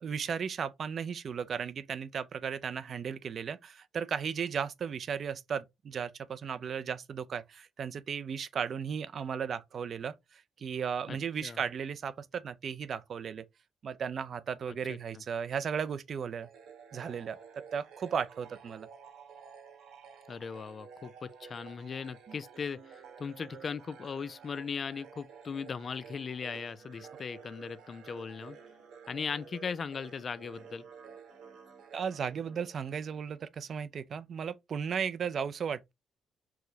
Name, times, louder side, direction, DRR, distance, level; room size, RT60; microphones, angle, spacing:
voice 1, 0.0-13.5 13.8-16.5 16.9-18.9 22.3-22.4 31.9-35.9, right 7 dB, 55° right, 0.3 m, -35 dB
voice 2, 11.1-11.6 14.9-15.0 20.3-28.6 29.1-30.9, left 6 dB, 45° left, 0.3 m, -38 dB
sound 1, 16.4-33.2, right 6 dB, 80° right, 1.1 m, -52 dB
4.6 x 2.1 x 2.7 m
cardioid pair, 90°, 0 cm